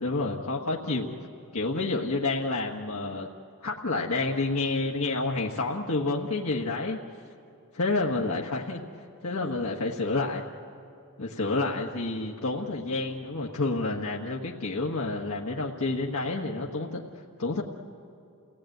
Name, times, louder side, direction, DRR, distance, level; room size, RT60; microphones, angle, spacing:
voice 1, 0.0-1.1 1.5-3.3 3.6-7.0 7.7-8.8 9.2-10.5 11.2-17.0 17.4-17.6, left 3 dB, 75° left, -2 dB, 1.4 m, -29 dB
29.5 x 17.5 x 9.2 m, 2.8 s
head